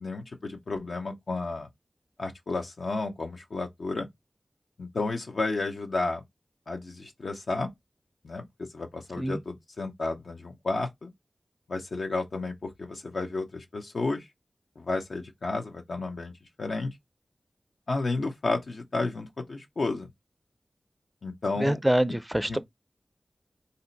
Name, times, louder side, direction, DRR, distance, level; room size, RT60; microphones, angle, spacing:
voice 1, 0.0-1.7 2.2-4.1 4.8-6.2 6.7-7.7 8.2-11.1 11.7-14.2 14.8-16.3 16.6-16.9 17.9-20.1 21.2-21.8 22.5-22.6, left 3 dB, 80° left, 0.6 m, -32 dB
voice 2, 21.6-22.6, right 1 dB, 10° right, 0.4 m, -25 dB
2.7 x 2.1 x 3.8 m
cardioid pair, 45°, 0 cm